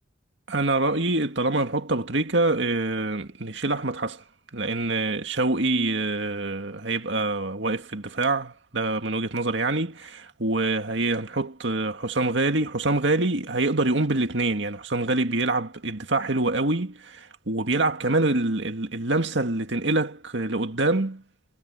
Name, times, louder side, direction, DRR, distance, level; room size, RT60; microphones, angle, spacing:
voice 1, 0.5-4.2 4.5-21.2, right 2 dB, 65° right, 2.1 m, -25 dB
head